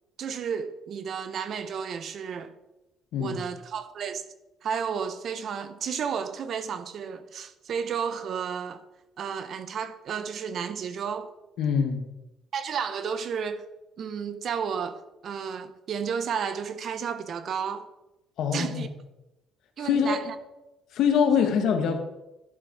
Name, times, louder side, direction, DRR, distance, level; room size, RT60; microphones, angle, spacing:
voice 1, 0.2-2.5 3.2-4.2 4.6-8.8 9.2-11.3 12.5-13.6 14.0-17.9 18.5-18.9 19.8-20.3 21.4-21.5, right 7 dB, 50° right, 0.7 m, -32 dB
voice 2, 11.6-12.0 18.4-18.9 19.8-20.1 20.9-22.0, left 7 dB, 70° left, 1.2 m, -24 dB
11.0 x 4.5 x 4.5 m
cardioid pair, 115°, 0 cm